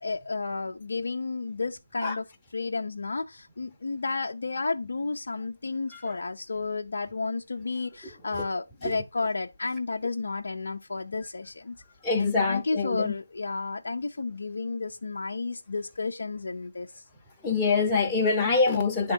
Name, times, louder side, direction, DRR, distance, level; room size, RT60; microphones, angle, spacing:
voice 1, 0.0-11.8 12.2-17.0, left 3 dB, 50° left, 0.6 m, -32 dB
voice 2, 12.0-13.1 17.4-19.1, left 4 dB, 5° left, 0.9 m, -25 dB
9.7 x 3.6 x 4.3 m
figure-of-eight pair, 165°, 0 cm